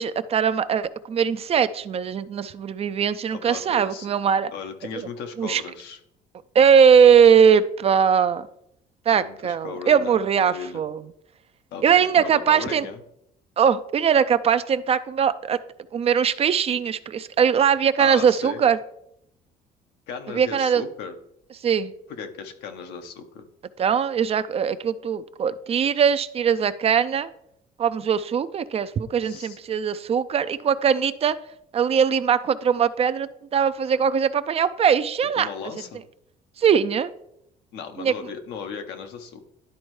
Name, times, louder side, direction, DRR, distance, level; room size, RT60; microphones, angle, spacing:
voice 1, 0.0-4.5 5.0-5.1 5.4-5.6 6.5-8.4 9.1-11.0 11.8-12.8 13.6-15.6 15.9-18.8 20.3-20.8 21.6-21.9 23.8-27.3 27.8-31.4 31.7-35.5 36.6-37.1 38.0-38.1, right 7 dB, 35° right, 13 dB, 0.4 m, -20 dB
voice 2, 3.3-4.1 4.5-6.0 9.1-10.8 11.7-13.0 18.0-18.6 20.1-21.1 22.1-23.4 29.2-29.6 35.4-36.0 37.7-39.4, left 6 dB, 85° left, 6 dB, 0.9 m, -36 dB
11.5 x 4.3 x 3.1 m, 0.77 s
cardioid pair, 110°, 17 cm